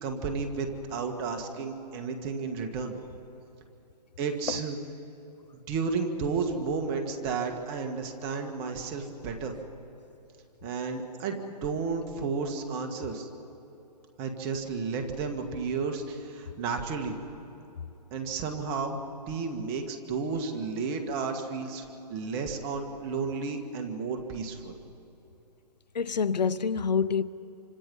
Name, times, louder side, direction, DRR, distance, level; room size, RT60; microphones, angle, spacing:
voice 1, 0.0-3.0 4.2-4.8 5.5-9.6 10.6-13.3 14.2-17.2 18.1-19.0 19.3-24.8, right 4 dB, 25° right, 2.0 m, -32 dB
voice 2, 25.9-27.2, left 6 dB, 80° left, 0.9 m, -26 dB
27.5 x 26.0 x 5.6 m
hypercardioid pair, 140°, 21 cm